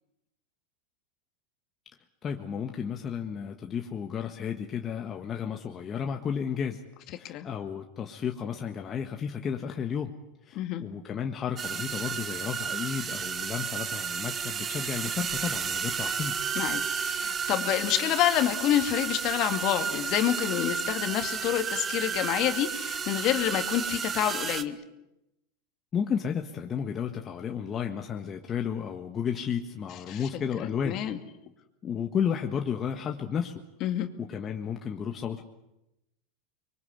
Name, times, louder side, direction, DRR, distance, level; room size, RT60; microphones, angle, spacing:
voice 1, 2.2-6.8 7.2-10.2 10.4-16.4 25.9-31.0 31.8-33.6 34.2-35.4, left 7 dB, 30° left, 3 dB, 1.6 m, -32 dB
sound 1, 11.6-24.6, right 7 dB, 30° right, 1.3 m, -32 dB
voice 2, 16.6-24.8 30.1-30.2 30.6-31.2 33.8-34.1, left 12 dB, 50° left, 7 dB, 2.3 m, -28 dB
24.5 x 23.0 x 8.1 m, 0.90 s
hypercardioid pair, 105°, 0 cm